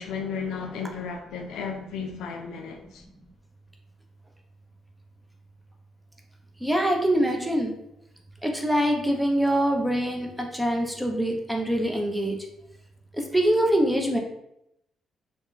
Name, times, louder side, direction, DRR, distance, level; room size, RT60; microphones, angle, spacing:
voice 1, 0.0-3.0, left 5 dB, 85° left, 0.4 m, -34 dB
voice 2, 6.6-7.7 8.4-12.4 13.1-14.2, right 1 dB, 5° right, 0.6 m, -24 dB
2.5 x 2.3 x 3.6 m
cardioid pair, 90°, 0 cm